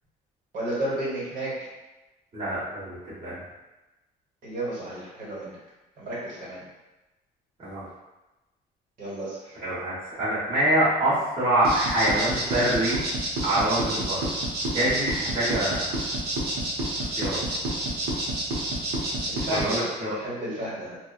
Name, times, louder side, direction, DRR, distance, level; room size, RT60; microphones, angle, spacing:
voice 1, 0.5-1.5 4.4-5.6 6.0-6.6 9.0-9.6 19.3-19.9 20.1-21.0, right 1 dB, 55° right, -7 dB, 1.3 m, -32 dB
voice 2, 2.3-3.4 7.6-7.8 9.6-13.0 13.4-14.3 14.7-15.9 17.1-17.4 19.5-20.2, right 1 dB, 30° right, -12 dB, 1.3 m, -25 dB
sound 1, 11.6-19.8, right 1 dB, 75° right, 0.8 m, -29 dB
2.8 x 2.3 x 2.4 m, 1.1 s
cardioid pair, 110°, 17 cm